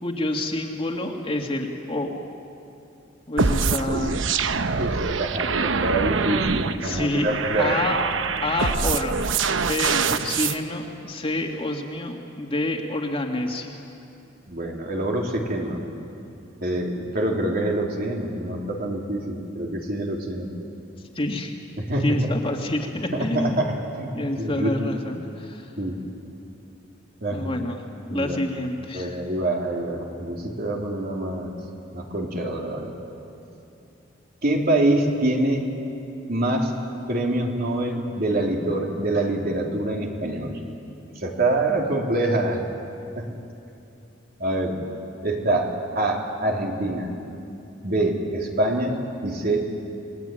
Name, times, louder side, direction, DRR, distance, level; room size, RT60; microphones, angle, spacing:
voice 1, 0.0-2.2 3.3-4.2 6.8-8.0 8.4-9.3 9.5-13.8 21.2-21.5 22.0-23.6 24.1-25.7 27.3-27.8 28.1-29.2, left 2 dB, 30° left, 1 dB, 2.2 m, -28 dB
sound 1, 3.4-10.6, right 5 dB, 85° right, 0.9 m, -24 dB
voice 2, 4.8-7.8 14.5-15.8 16.6-20.5 21.8-22.1 23.1-24.7 25.8-26.0 27.2-27.5 28.1-28.4 28.9-31.5 31.9-32.9 34.4-35.7 36.3-36.7 37.1-40.6 41.2-42.6 43.1-43.3 44.4-44.8 45.2-47.1 47.8-49.7, right 1 dB, 55° right, 0 dB, 3.4 m, -25 dB
29.0 x 20.0 x 9.2 m, 2.7 s
head